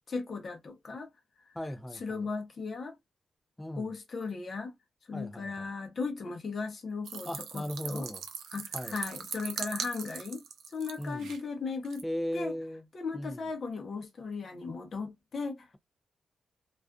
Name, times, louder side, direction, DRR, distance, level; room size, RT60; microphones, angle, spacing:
voice 1, 0.1-1.1 1.9-3.0 3.8-4.7 5.1-7.3 7.5-8.1 8.5-10.4 10.7-12.0 12.3-12.6 12.9-15.7, left 4 dB, 45° left, 0.7 m, -37 dB
voice 2, 1.5-2.3 3.6-3.9 5.1-5.7 7.2-8.2 8.7-9.0 11.0-11.3 12.0-12.9 13.1-13.4, equal, 10° left, 0.3 m, -37 dB
sound 1, 7.1-11.4 11.9-12.0, right 7 dB, 80° right, 0.4 m, -40 dB
2.3 x 2.3 x 2.3 m
cardioid pair, 120°, 0 cm